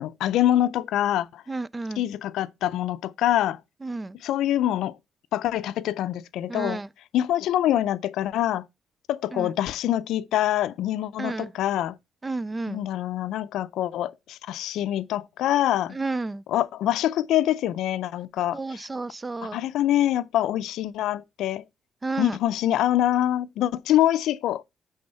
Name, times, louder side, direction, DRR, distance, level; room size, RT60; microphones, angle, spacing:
voice 1, 0.0-1.4 2.0-3.6 4.2-5.0 5.3-6.8 7.1-8.6 9.1-12.0 12.7-16.0 16.5-18.9 19.4-21.6 22.2-24.6, left 12 dB, 85° left, 0.4 m, -25 dB
voice 2, 1.5-2.0 3.8-4.2 6.5-6.9 9.3-9.5 11.2-11.5 12.2-12.8 15.9-16.4 18.5-19.6 22.0-22.4, right 3 dB, 25° right, 0.3 m, -31 dB
8.7 x 3.5 x 5.4 m
cardioid pair, 90°, 0 cm